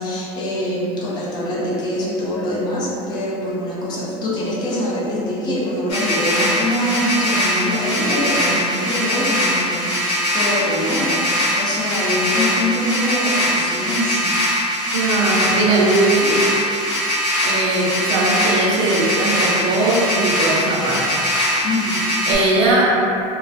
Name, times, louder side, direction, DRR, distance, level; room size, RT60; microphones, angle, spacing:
voice 1, 0.0-14.4 21.6-22.1, left 1 dB, 25° left, -6 dB, 0.4 m, -24 dB
sound 1, 5.9-22.4, equal, 45° left, 0.8 m, -21 dB
voice 2, 14.9-16.4 17.4-21.0 22.3-22.9, right 2 dB, 80° right, -5 dB, 0.6 m, -19 dB
2.3 x 2.3 x 2.4 m, 2.8 s
cardioid pair, 155°, 16 cm